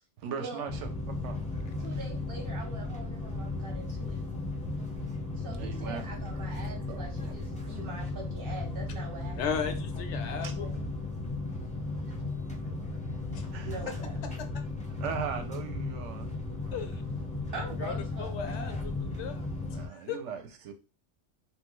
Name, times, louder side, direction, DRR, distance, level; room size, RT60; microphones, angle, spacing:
voice 1, 0.2-1.5 5.1-5.2 5.6-6.0 6.9-7.3 7.6-7.8 10.4-10.5 12.6-12.7 13.4-14.0 15.0-16.3 16.6-16.8 19.7-20.7, right 6 dB, 70° right, 0.9 m, -39 dB
sound 1, 0.7-19.9, left 3 dB, 10° left, 0.5 m, -35 dB
voice 2, 1.8-4.2 5.4-9.4 10.2-10.7 13.6-14.2 17.5-18.8, right 3 dB, 50° right, 0.9 m, -43 dB
voice 3, 9.4-10.8 13.3-13.7 14.5-14.6 16.7-17.0 17.8-20.2, left 7 dB, 70° left, 0.8 m, -37 dB
3.1 x 2.2 x 3.0 m
omnidirectional pair, 1.3 m